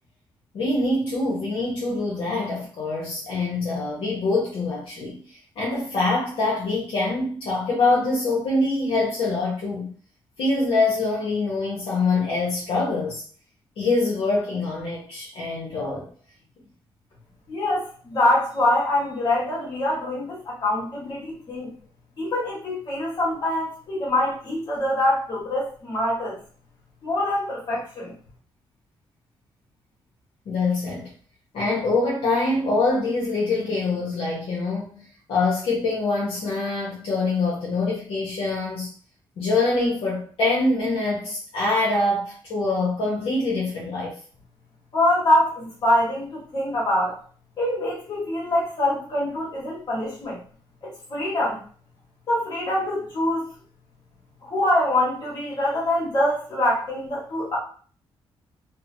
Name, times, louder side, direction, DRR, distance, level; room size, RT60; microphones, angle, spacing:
voice 1, 0.5-5.2 5.6-9.9 10.4-13.2 13.8-16.1 30.5-31.1 31.5-38.9 39.4-44.1, left 3 dB, 75° left, -5 dB, 0.9 m, -24 dB
voice 2, 17.5-21.7 22.2-26.4 27.0-28.1 44.9-47.2 47.6-50.4 50.8-51.6 52.3-53.5 54.4-57.6, left 1 dB, 45° left, -5 dB, 1.5 m, -24 dB
2.7 x 2.1 x 2.6 m, 0.43 s
cardioid pair, 135°, 9 cm